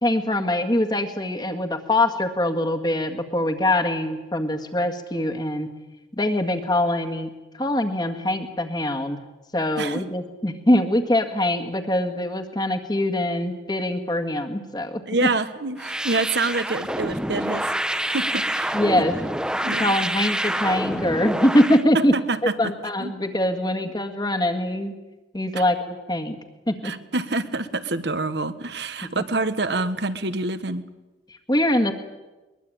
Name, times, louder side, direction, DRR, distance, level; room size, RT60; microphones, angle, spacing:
voice 1, 0.0-5.7 6.2-9.2 9.5-15.3 18.7-19.2 19.7-22.2 22.6-24.9 25.3-26.4 26.7-26.9 29.1-29.2 31.3-31.9, left 1 dB, 20° left, 5 dB, 1.9 m, -23 dB
voice 2, 15.1-17.7 18.0-19.0 19.6-20.0 22.1-22.4 23.0-23.1 25.5-25.6 26.8-30.8, right 3 dB, 65° right, 12 dB, 1.4 m, -27 dB
sound 1, 15.8-21.8, right 1 dB, 5° right, 0.9 m, -27 dB
22.0 x 22.0 x 8.8 m, 1.2 s
head